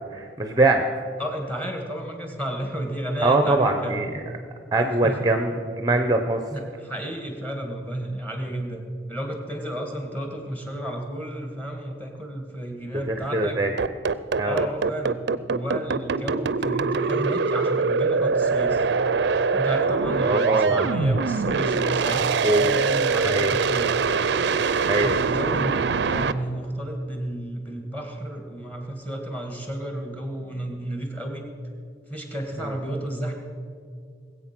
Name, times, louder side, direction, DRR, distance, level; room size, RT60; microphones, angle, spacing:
voice 1, 0.1-0.8 3.2-4.2 4.7-6.4 13.1-13.7 14.4-14.6 20.2-20.9 22.4-22.7 23.2-23.5 24.9-25.1 32.6-32.8, right 2 dB, 20° right, 6 dB, 0.6 m, -22 dB
voice 2, 1.2-4.0 4.8-5.2 6.5-8.8 9.1-13.6 14.5-18.8 19.5-24.0 25.0-31.4 32.1-33.3, right 1 dB, 10° left, 3 dB, 1.8 m, -32 dB
sound 1, 13.8-26.3, right 4 dB, 60° right, 0.5 m, -23 dB
19.5 x 8.2 x 6.0 m, 2.2 s
head